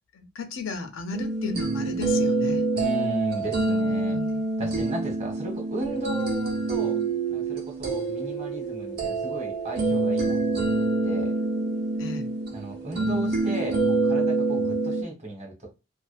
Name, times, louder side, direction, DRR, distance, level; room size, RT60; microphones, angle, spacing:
voice 1, 0.1-2.6 3.4-4.8 12.0-12.3, left 3 dB, 75° left, 0.5 m, -36 dB
sound 1, 1.1-15.0, right 3 dB, 50° right, 0.7 m, -26 dB
voice 2, 2.7-4.2 4.6-7.0 7.3-11.3 12.5-15.7, right 1 dB, 30° right, 1.1 m, -35 dB
2.4 x 2.3 x 2.4 m
head